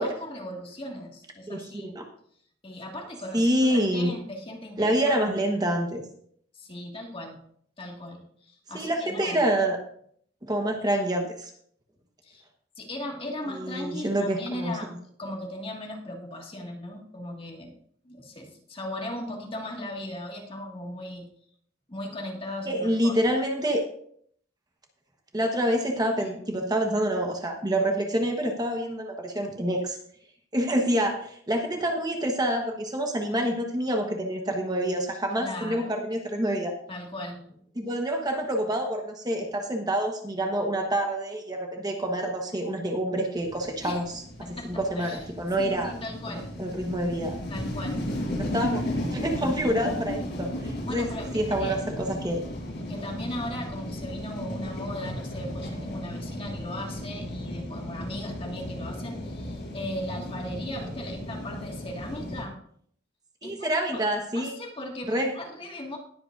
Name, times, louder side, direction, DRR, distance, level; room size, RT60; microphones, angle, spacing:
voice 1, 0.0-2.0 2.6-5.3 6.5-7.4 7.8-9.4 12.2-12.4 12.8-14.9 15.2-17.8 18.0-21.3 21.9-23.1 26.2-26.4 35.4-35.9 36.9-37.6 43.8-44.0 44.4-45.3 45.6-46.5 47.5-48.1 50.9-51.8 52.9-62.6 63.4-64.1 64.3-66.0, left 1 dB, 30° left, 0 dB, 2.0 m, -38 dB
voice 2, 3.3-4.1 4.8-6.0 8.7-9.8 10.5-11.5 13.5-14.8 22.7-23.8 25.3-30.0 30.5-36.7 37.8-44.0 44.7-45.9 46.3-47.3 48.4-48.8 49.1-51.1 51.3-52.4 63.4-64.6 65.1-65.3, right 1 dB, 20° right, 2 dB, 1.2 m, -27 dB
sound 1, 43.4-62.4, left 1 dB, 65° left, 5.4 m, -35 dB
20.0 x 7.9 x 2.6 m, 0.63 s
head